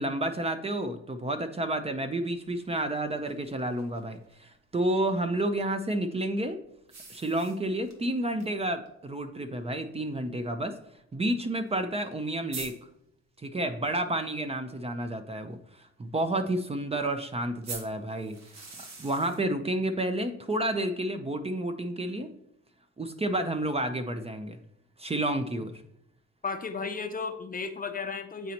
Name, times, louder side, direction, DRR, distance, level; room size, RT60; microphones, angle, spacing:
voice 1, 0.0-6.6 7.1-10.7 11.1-12.7 13.4-18.4 19.0-22.3 23.0-24.6 25.0-25.7, right 1 dB, 20° right, 8 dB, 0.6 m, -30 dB
sound 1, 2.3-4.4 6.9-8.0 8.4-8.5 8.9-9.0 9.9-10.0 11.7-11.8 12.1-12.2 12.5-12.7 17.6-19.4, right 3 dB, 60° right, 1.4 m, -44 dB
voice 2, 26.4-28.5, left 4 dB, 30° left, 8 dB, 0.6 m, -34 dB
9.0 x 4.1 x 2.9 m, 0.76 s
cardioid pair, 90°, 30 cm